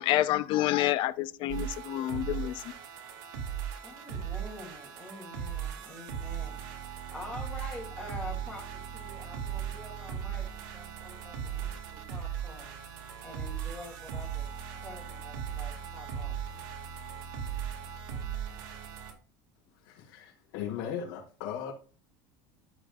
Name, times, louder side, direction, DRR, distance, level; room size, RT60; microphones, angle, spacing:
voice 1, 0.0-2.7, left 14 dB, 45° left, 0.7 m, -28 dB
sound 1, 1.5-19.1, right 8 dB, 80° right, 2.2 m, -38 dB
voice 2, 3.8-6.6 6.8-10.5 10.7-12.7 13.2-14.5 14.8-16.4, left 1 dB, 5° left, 2.9 m, -46 dB
voice 3, 19.8-21.7, left 8 dB, 75° left, 4.3 m, -37 dB
15.0 x 5.2 x 2.4 m
cardioid pair, 155°, 11 cm